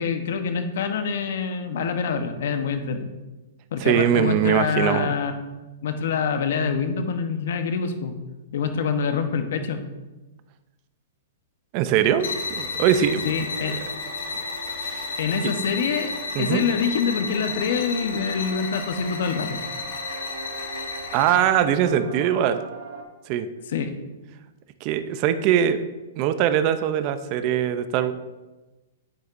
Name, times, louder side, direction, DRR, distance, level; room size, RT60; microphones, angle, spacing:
voice 1, 0.0-3.1 3.7-5.3 5.8-8.1 8.5-9.8 13.2-13.8 15.2-19.6 23.7-23.9, left 6 dB, 55° left, 8 dB, 0.9 m, -25 dB
voice 2, 3.8-5.1 11.7-12.3 12.6-13.7 14.8-15.1 16.3-16.6 21.1-22.6 23.3-23.5 24.8-25.8 26.2-28.1, right 10 dB, 30° right, 11 dB, 0.5 m, -22 dB
sound 1, 12.2-21.5, left 4 dB, 75° left, 1.6 m, -32 dB
sound 2, 12.9-23.0, right 4 dB, 50° right, 1.5 m, -41 dB
9.6 x 9.2 x 2.6 m, 1.2 s
hypercardioid pair, 170°, 0 cm